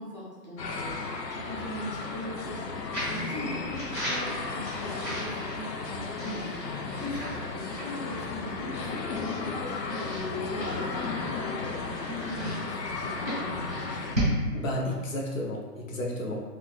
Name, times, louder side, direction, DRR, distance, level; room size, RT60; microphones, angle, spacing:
voice 1, 0.0-14.1, equal, 30° right, -8 dB, 0.4 m, -40 dB
sound 1, 0.6-14.2, left 4 dB, 90° left, 0.6 m, -34 dB
sound 2, 2.9-3.3 3.7-5.8 6.2-7.5 7.7-7.9 8.5-8.6 9.1-9.5 9.9-11.6 12.2-14.3, right 1 dB, 10° left, 0.7 m, -35 dB
voice 2, 14.5-16.4, left 1 dB, 55° left, -1 dB, 0.7 m, -32 dB
2.6 x 2.4 x 3.7 m, 1.4 s
hypercardioid pair, 165°, 48 cm